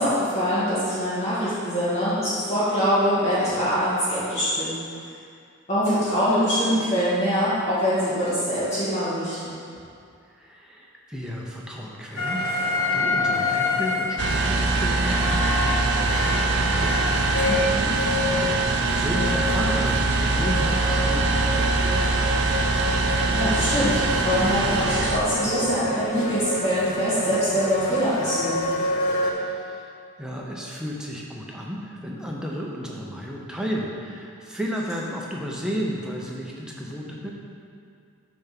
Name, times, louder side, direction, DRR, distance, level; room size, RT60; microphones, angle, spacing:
voice 1, 0.0-4.8 5.7-9.5 17.5-17.9 23.3-28.6, equal, 30° left, -12 dB, 1.6 m, -24 dB
voice 2, 10.3-16.5 16.8-17.9 18.3-22.6 29.3-29.9 30.2-37.3, equal, 5° right, -3 dB, 0.6 m, -33 dB
sound 1, 12.1-29.3, left 2 dB, 70° left, 0.8 m, -28 dB
sound 2, 14.2-25.2, right 3 dB, 50° right, 0.4 m, -23 dB
6.9 x 3.5 x 5.8 m, 2.4 s
head